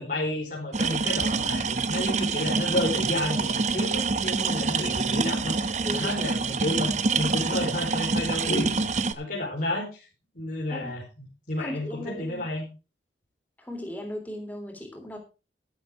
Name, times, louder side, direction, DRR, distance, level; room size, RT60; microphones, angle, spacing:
voice 1, 0.0-5.6 5.9-10.0 10.3-11.0 11.5-12.7, left 1 dB, 50° left, -3 dB, 4.3 m, -31 dB
sound 1, 0.7-9.1, right 4 dB, 40° right, 0.8 m, -26 dB
voice 2, 11.6-12.4 13.6-15.2, left 1 dB, 10° left, 3 dB, 3.4 m, -37 dB
12.0 x 11.5 x 3.7 m, 0.30 s
head